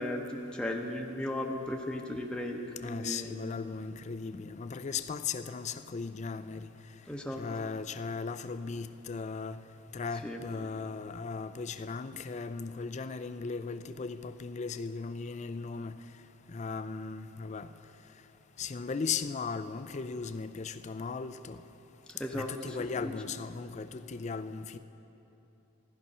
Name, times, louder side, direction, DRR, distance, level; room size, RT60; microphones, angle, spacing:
voice 1, 0.0-2.6 2.8-3.3 7.1-7.4 10.2-10.4 22.1-23.1, left 1 dB, 5° left, 0 dB, 0.8 m, -36 dB
voice 2, 2.8-6.7 7.4-9.6 9.9-15.9 16.5-17.7 18.6-21.6 22.3-24.8, left 5 dB, 30° left, 11 dB, 0.4 m, -37 dB
14.5 x 12.5 x 5.4 m, 3.0 s
head